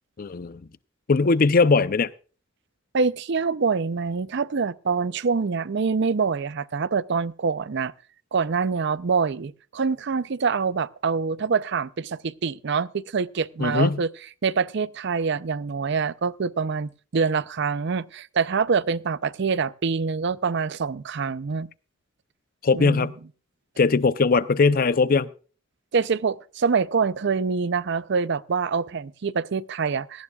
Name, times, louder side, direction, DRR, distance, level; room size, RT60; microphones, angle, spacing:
voice 1, 0.2-0.6 1.1-2.1 13.6-14.0 22.6-23.1 23.8-25.3, left 4 dB, 45° left, 0.5 m, -20 dB
voice 2, 2.9-7.9 8.3-14.1 14.4-21.7 22.7-23.1 25.9-30.2, right 5 dB, 60° right, 0.5 m, -25 dB
17.5 x 14.5 x 2.3 m
head